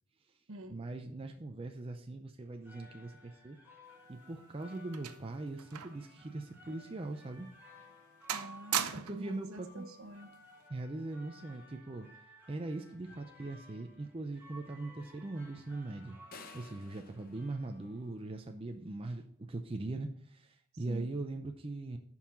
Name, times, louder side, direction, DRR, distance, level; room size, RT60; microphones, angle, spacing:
voice 1, 0.7-3.6 4.1-7.5 9.0-9.8 10.7-12.1 12.5-16.2 16.5-19.2 19.5-22.0, right 2 dB, 25° right, 4 dB, 0.5 m, -41 dB
sound 1, 2.4-18.3, equal, 10° right, 1.8 m, -58 dB
sound 2, 4.0-6.1 6.4-6.6 7.2-7.3 7.8-8.0 8.3-9.3 10.3-10.6, right 10 dB, 85° right, 0.7 m, -39 dB
voice 2, 8.3-10.3 20.9-21.1, right 2 dB, 70° right, 6 dB, 1.0 m, -47 dB
sound 3, 16.3-18.5, left 4 dB, 40° left, 0.8 m, -54 dB
7.0 x 5.5 x 5.9 m, 0.67 s
head